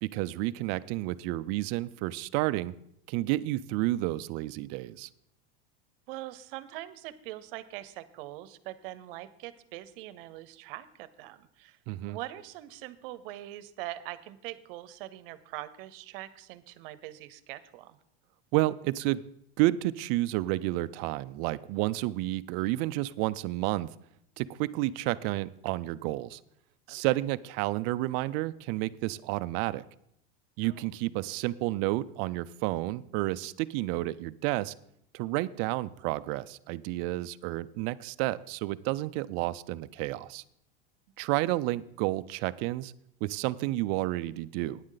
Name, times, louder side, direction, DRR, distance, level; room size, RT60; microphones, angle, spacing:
voice 1, 0.0-2.7 3.1-5.1 11.9-12.2 18.5-19.2 19.6-23.9 24.4-26.4 26.9-29.8 30.6-34.7 35.1-40.4 41.2-42.9 43.2-44.8, right 17 dB, 45° right, 16 dB, 0.4 m, -30 dB
voice 2, 6.1-11.8 12.1-18.0 26.9-27.0 30.6-30.9, right 15 dB, 60° right, 15 dB, 0.8 m, -43 dB
14.0 x 9.8 x 3.9 m, 0.74 s
supercardioid pair, 155°, 31 cm